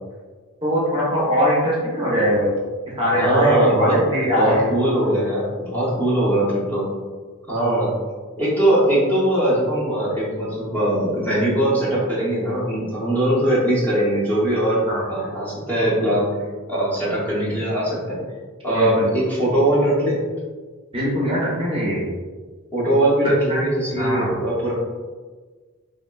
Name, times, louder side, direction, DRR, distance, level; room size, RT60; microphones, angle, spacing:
voice 1, 0.6-2.6 3.0-4.7 14.9-15.0 18.7-19.1 20.9-22.1 23.5-23.7 23.9-24.4, equal, 25° right, -6 dB, 0.7 m, -21 dB
voice 2, 3.1-4.0 4.3-6.9 7.5-7.9 8.4-14.8 15.1-16.3 16.7-18.2 18.6-20.2 22.7-24.7, right 1 dB, 10° left, -9 dB, 0.7 m, -20 dB
3.5 x 2.0 x 2.3 m, 1.4 s
head